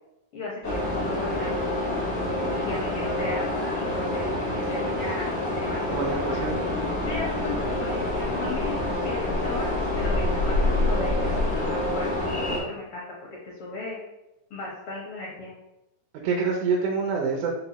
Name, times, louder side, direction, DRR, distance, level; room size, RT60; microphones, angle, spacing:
voice 1, 0.3-1.6 2.5-6.4 7.0-13.0 13.4-14.0 14.5-15.5, left 2 dB, 75° left, -4 dB, 1.2 m, -36 dB
sound 1, 0.6-12.6, left 1 dB, 55° left, 0.7 m, -27 dB
voice 2, 5.9-6.6 16.2-17.5, right 5 dB, 80° right, -1 dB, 2.0 m, -26 dB
5.4 x 2.2 x 4.0 m, 0.93 s
omnidirectional pair, 3.7 m